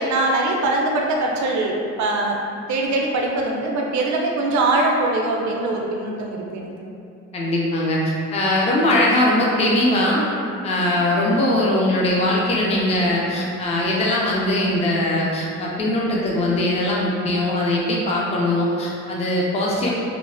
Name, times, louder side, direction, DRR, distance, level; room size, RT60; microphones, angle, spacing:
voice 1, 0.0-1.7 2.0-2.4 2.7-6.7, right 2 dB, 70° right, 0 dB, 0.5 m, -22 dB
voice 2, 7.3-10.3 10.6-19.9, left 1 dB, 20° left, -4 dB, 0.3 m, -21 dB
3.0 x 2.1 x 2.4 m, 2.5 s
cardioid pair, 140°, 30 cm